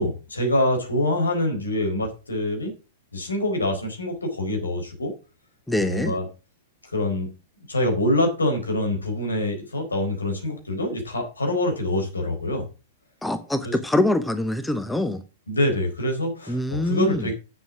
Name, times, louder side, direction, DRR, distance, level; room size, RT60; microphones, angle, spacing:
voice 1, 0.0-2.7 3.1-5.1 5.8-6.3 6.9-7.3 7.7-12.7 13.6-13.7 15.5-17.3, left 1 dB, 80° left, 4.1 m, -25 dB
voice 2, 5.7-6.1 13.2-15.2 16.5-17.3, left 1 dB, 5° left, 0.9 m, -24 dB
7.8 x 7.5 x 6.1 m
figure-of-eight pair, 100°, 0 cm